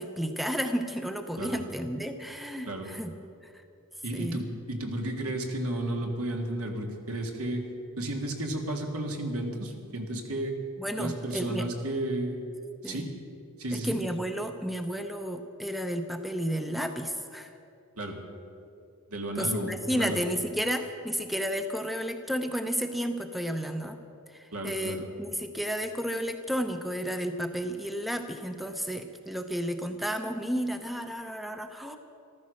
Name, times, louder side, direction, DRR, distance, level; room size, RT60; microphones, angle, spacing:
voice 1, 0.0-3.1 3.4-3.5 4.1-4.4 10.8-11.7 12.8-13.1 13.7-17.5 19.4-24.0 24.3-32.0, equal, ahead, 7 dB, 0.6 m, -32 dB
voice 2, 4.0-7.7 8.0-10.6 11.0-12.4 12.8-13.1 13.6-14.0 18.0-18.2 19.1-20.2 24.5-25.1, right 1 dB, 80° right, 3 dB, 1.9 m, -33 dB
14.0 x 13.0 x 6.4 m, 2.6 s
head